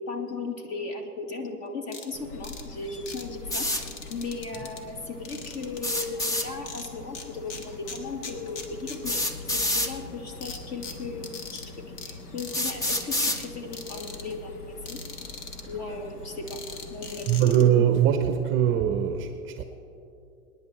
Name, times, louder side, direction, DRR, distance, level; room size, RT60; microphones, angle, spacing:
voice 1, 0.1-11.6 12.0-15.0 15.7-16.6 16.9-17.6, left 3 dB, 35° left, 4 dB, 2.0 m, -36 dB
sound 1, 1.9-2.1 2.4-2.6 3.1-3.2 3.7-4.8 5.2-6.1 6.7-7.2 7.5-9.3 9.6-9.7 10.4-11.7 12.0-12.1 12.4-12.6 12.9-13.5 13.7-14.2 14.9-15.6 16.5-17.6, left 5 dB, 60° left, 1.8 m, -40 dB
sound 2, 2.1-17.4, left 3 dB, 85° left, 1.4 m, -44 dB
sound 3, 3.5-3.8 5.8-6.5 7.9-8.0 9.0-9.9 10.9-11.0 11.7-11.8 12.5-13.4, left 1 dB, 10° left, 0.4 m, -27 dB
voice 2, 17.3-19.6, right 10 dB, 25° right, 8 dB, 0.7 m, -22 dB
25.0 x 10.0 x 3.3 m, 2.7 s
hypercardioid pair, 110°, 46 cm